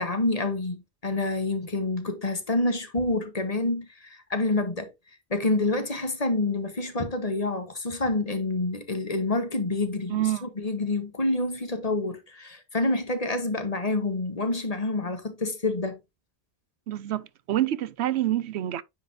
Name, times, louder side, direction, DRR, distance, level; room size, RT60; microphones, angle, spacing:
voice 1, 0.0-4.9 5.3-16.0, left 2 dB, 35° left, 1.3 m, -27 dB
voice 2, 10.1-10.5 16.9-18.8, right 13 dB, 90° right, 0.9 m, -27 dB
9.4 x 5.0 x 2.7 m
omnidirectional pair, 1.1 m